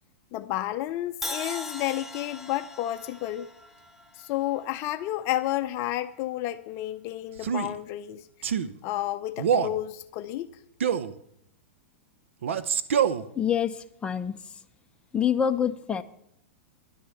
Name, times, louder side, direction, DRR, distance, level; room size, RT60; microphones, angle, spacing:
voice 1, 0.3-3.5 4.1-8.3 8.8-10.5, left 14 dB, 40° left, 9 dB, 0.6 m, -31 dB
Crash cymbal, 1.2-5.3, left 1 dB, 5° right, 1.2 m, -40 dB
Male speech man speaking, 7.4-7.7 8.4-8.7 9.4-9.8 10.8-11.1 12.4-13.2, right 8 dB, 80° right, 0.9 m, -25 dB
voice 2, 13.3-14.4 15.1-16.0, left 8 dB, 15° left, 6 dB, 0.8 m, -26 dB
11.0 x 10.0 x 7.1 m, 0.73 s
hypercardioid pair, 125°, 7 cm